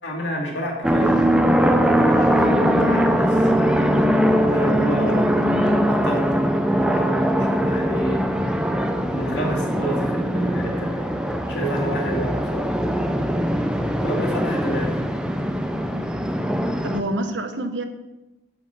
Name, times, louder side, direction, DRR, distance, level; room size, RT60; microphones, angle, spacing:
voice 1, 0.0-1.1 1.8-3.9 4.5-5.3 5.9-6.2 6.7-8.3 9.1-11.0 11.5-12.7 14.0-15.0, equal, 75° left, -2 dB, 2.5 m, -29 dB
sound 1, 0.8-17.0, equal, 5° right, 0.5 m, -21 dB
voice 2, 16.8-17.8, right 1 dB, 80° right, 8 dB, 0.9 m, -27 dB
7.9 x 5.1 x 6.7 m, 0.99 s
head